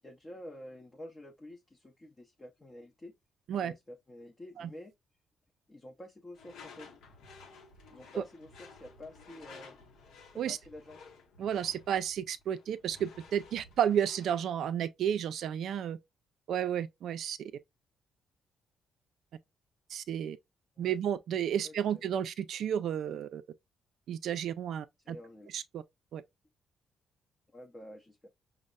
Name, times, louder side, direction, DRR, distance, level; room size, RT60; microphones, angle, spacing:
voice 1, 0.0-3.1 3.6-4.9 5.7-6.9 7.9-9.8 10.5-11.0 20.8-21.0 21.6-21.7 25.0-25.6 27.5-28.3, left 1 dB, 25° left, 0.6 m, -49 dB
Door / Screech, 6.3-14.6, left 4 dB, 80° left, 0.7 m, -54 dB
voice 2, 11.4-16.0 16.5-17.5 19.9-20.4 20.8-23.4 24.1-25.2 25.5-25.8 26.1-26.2, right 9 dB, 70° right, 0.3 m, -32 dB
5.2 x 2.0 x 2.2 m
cardioid pair, 90°, 0 cm